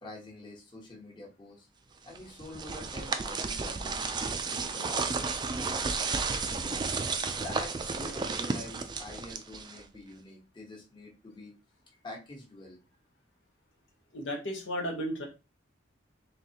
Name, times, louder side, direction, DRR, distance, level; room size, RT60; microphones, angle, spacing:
voice 1, 0.0-1.7 2.0-4.1 4.4-6.6 7.3-11.5 12.0-12.8, left 1 dB, 25° left, -2 dB, 1.2 m, -46 dB
sound 1, 2.1-10.0, right 4 dB, 25° right, 0.4 m, -33 dB
voice 2, 14.1-15.2, equal, 85° left, 1 dB, 1.2 m, -34 dB
3.9 x 3.2 x 2.9 m, 0.29 s
head